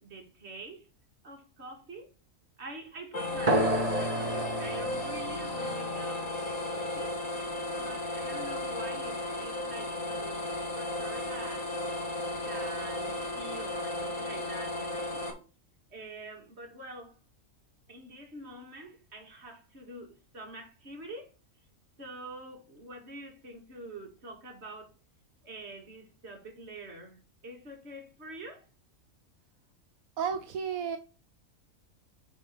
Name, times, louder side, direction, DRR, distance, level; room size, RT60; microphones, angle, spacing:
voice 1, 0.0-0.9 1.2-2.1 2.6-6.3 6.7-7.1 7.7-11.7 12.4-15.2 15.9-17.2 17.9-21.3 22.0-24.9 25.4-28.7, right 2 dB, 50° right, 2.4 m, -46 dB
sound 1, 3.1-15.3, left 1 dB, 80° left, 2.5 m, -34 dB
sound 2, 3.5-8.5, right 1 dB, 30° right, 1.2 m, -33 dB
voice 2, 30.2-31.0, right 7 dB, 80° right, 1.2 m, -32 dB
8.0 x 4.4 x 5.2 m
omnidirectional pair, 1.5 m